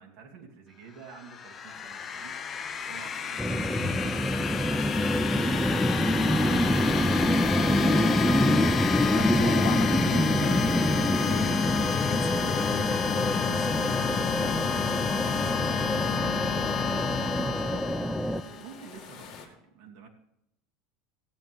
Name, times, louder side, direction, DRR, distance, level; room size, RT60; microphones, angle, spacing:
voice 1, 0.0-2.4 2.8-4.6 4.9-7.4 15.7-20.1, right 6 dB, 55° right, -1 dB, 2.6 m, -48 dB
sound 1, 1.1-18.7, left 7 dB, 25° left, 0.8 m, -30 dB
sound 2, 1.5-19.5, left 6 dB, 45° left, 2.5 m, -55 dB
sound 3, 3.4-18.4, equal, ahead, 0.5 m, -26 dB
voice 2, 9.1-14.7, left 9 dB, 70° left, 10 dB, 1.1 m, -38 dB
17.0 x 9.3 x 3.5 m, 0.82 s
supercardioid pair, 155°, 0 cm